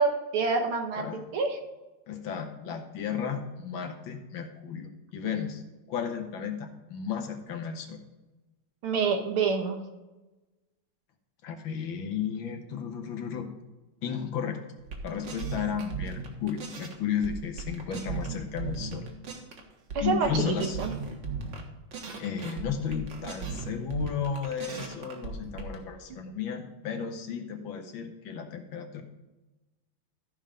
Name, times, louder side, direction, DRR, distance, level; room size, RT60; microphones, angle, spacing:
voice 1, 0.0-1.6 8.8-9.8 19.9-20.9, right 4 dB, 75° right, 4 dB, 2.2 m, -27 dB
voice 2, 2.1-5.6 5.9-8.0 11.4-13.5 14.0-14.6 15.0-19.1 20.0-20.8 22.2-29.0, left 7 dB, 70° left, 5 dB, 1.8 m, -33 dB
sound 1, 14.8-16.9 17.2-19.6 19.9-21.6 21.9-25.7, right 5 dB, 60° right, 2.0 m, -37 dB
13.5 x 5.6 x 5.0 m, 1.1 s
omnidirectional pair, 2.3 m